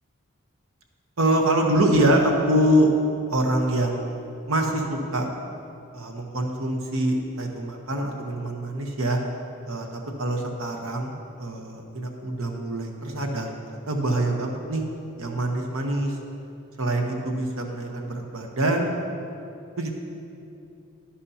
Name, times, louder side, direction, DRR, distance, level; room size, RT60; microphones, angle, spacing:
voice 1, 1.2-2.9 3.3-4.2 4.5-5.3 5.9-9.2 9.6-13.5 13.9-14.8 15.2-16.2 16.8-18.9 19.8-19.9, right 1 dB, 70° right, 2 dB, 0.9 m, -24 dB
11.5 x 11.0 x 2.8 m, 2.7 s
head